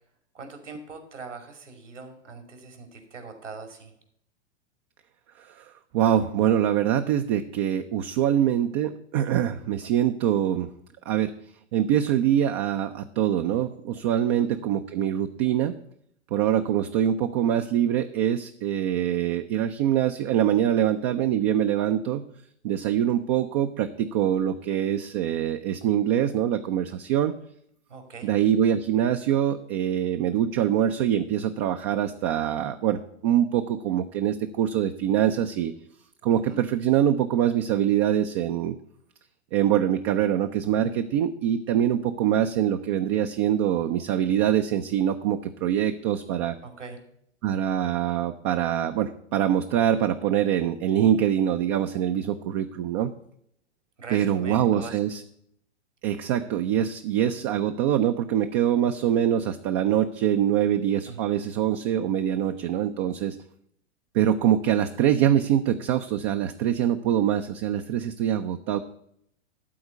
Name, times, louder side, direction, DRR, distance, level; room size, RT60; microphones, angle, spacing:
voice 1, 0.3-3.9 14.3-14.5 27.9-28.3 36.5-36.6 46.6-47.0 54.0-55.0 61.1-61.2, right 4 dB, 80° right, 6 dB, 2.5 m, -41 dB
voice 2, 5.4-10.7 11.1-11.3 11.7-15.7 16.3-22.2 22.6-27.3 28.2-35.7 36.2-38.8 39.5-46.6 47.4-53.1 54.1-55.2 56.0-63.4 64.1-68.8, right 10 dB, 25° right, 7 dB, 0.4 m, -24 dB
12.5 x 4.3 x 7.9 m, 0.71 s
figure-of-eight pair, 105°, 36 cm